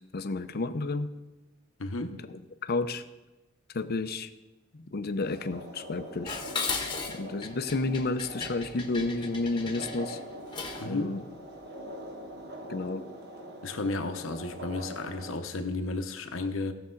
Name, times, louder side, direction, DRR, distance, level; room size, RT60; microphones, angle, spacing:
voice 1, 0.1-1.1 2.6-3.0 3.7-4.3 4.9-6.4 7.1-10.2 10.8-11.2 12.7-13.0, left 3 dB, 50° left, 10 dB, 0.6 m, -31 dB
voice 2, 1.8-2.2 4.7-4.8 10.8-11.2 13.6-16.7, left 3 dB, 75° left, 7 dB, 1.0 m, -33 dB
sound 1, 5.2-15.4, equal, 55° right, 1.3 m, -43 dB
Dishes pots and pans, 6.3-10.9, left 4 dB, 25° left, 1.1 m, -36 dB
16.5 x 6.8 x 3.9 m, 1.1 s
head